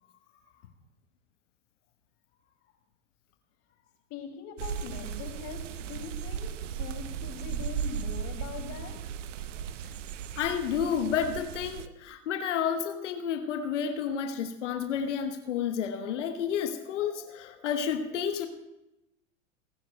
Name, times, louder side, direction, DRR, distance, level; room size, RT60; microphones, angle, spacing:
voice 1, 0.0-0.6 3.7-3.8 4.1-9.0, left 6 dB, 45° left, 4 dB, 2.5 m, -42 dB
sound 1, 4.6-11.9, right 8 dB, 70° right, 0.8 m, -36 dB
voice 2, 10.4-18.5, left 7 dB, 70° left, 7 dB, 1.2 m, -30 dB
27.5 x 10.5 x 2.2 m, 0.92 s
hypercardioid pair, 95°, 38 cm